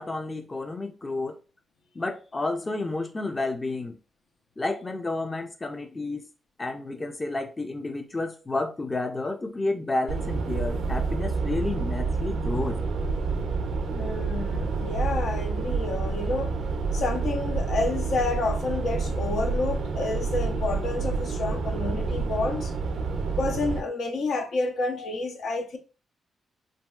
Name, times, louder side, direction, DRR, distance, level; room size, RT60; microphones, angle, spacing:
voice 1, 0.0-1.3 2.0-4.0 4.6-6.2 6.6-12.8, left 2 dB, 30° left, 0.5 m, -30 dB
sound 1, 10.1-23.8, right 4 dB, 80° right, 0.4 m, -28 dB
voice 2, 13.9-16.5 16.9-22.7 23.4-25.8, left 3 dB, 75° left, 0.6 m, -29 dB
3.0 x 2.6 x 2.3 m
cardioid pair, 75°, 0 cm